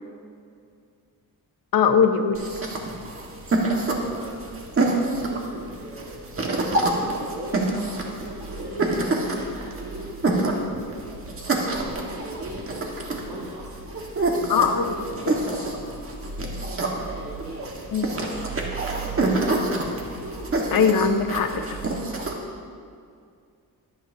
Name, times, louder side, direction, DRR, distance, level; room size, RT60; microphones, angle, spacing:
voice 1, 1.7-2.4 14.5-14.8 17.9-18.2 20.7-21.5, left 6 dB, 70° left, 6 dB, 1.0 m, -20 dB
sound 1, 2.3-22.3, right 2 dB, 35° right, 1.6 m, -27 dB
voice 2, 4.0-13.7 14.4-15.7 16.2-16.3 16.6-17.9 21.5-21.7, right 1 dB, 75° right, -4 dB, 1.8 m, -40 dB
23.0 x 9.0 x 2.8 m, 2.3 s
wide cardioid pair, 140°, 36 cm